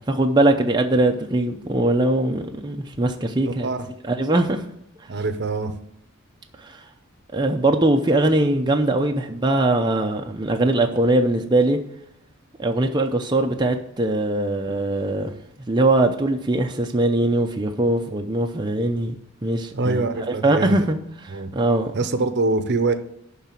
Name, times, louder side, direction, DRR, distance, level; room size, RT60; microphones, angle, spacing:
voice 1, 0.1-3.7 4.0-4.6 6.6-6.8 7.3-11.8 12.6-15.3 15.7-19.2 19.4-20.0 20.3-21.0 21.2-21.9, right 2 dB, 20° right, 0.6 m, -21 dB
voice 2, 5.1-5.7 19.7-20.9 21.3-21.5 21.9-22.9, right 3 dB, 50° right, 0.8 m, -24 dB
11.5 x 4.0 x 7.5 m
head